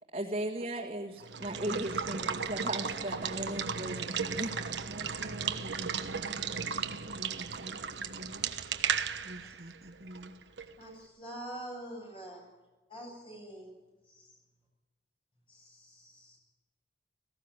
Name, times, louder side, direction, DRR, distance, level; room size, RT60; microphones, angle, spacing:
voice 1, 0.1-4.9, right 1 dB, 35° right, -3 dB, 1.9 m, -37 dB
Water / Water tap faucet / Liquid, 1.2-10.8, right 6 dB, 90° right, 1.3 m, -35 dB
voice 2, 1.3-2.4 3.4-3.5 4.9-8.6 9.2-10.4, right 1 dB, 55° right, 3 dB, 1.2 m, -47 dB
voice 3, 10.8-12.5 12.9-14.3 15.5-16.4, right 1 dB, 30° left, 0 dB, 7.9 m, -46 dB
18.0 x 16.5 x 9.7 m, 1.2 s
head